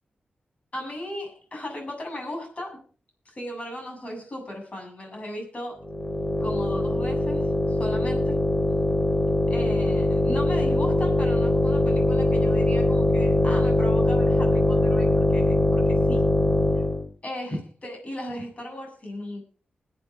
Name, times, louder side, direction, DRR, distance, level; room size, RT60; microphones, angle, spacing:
voice 1, 0.7-2.8 3.3-5.8 6.4-8.4 9.5-16.2 16.8-16.9 17.2-19.4, left 1 dB, 40° left, 2 dB, 7.8 m, -36 dB
sound 1, 5.8-17.0, left 1 dB, 25° left, 5.4 m, -22 dB
21.0 x 8.9 x 5.0 m, 0.39 s
cardioid pair, 75°, 3 cm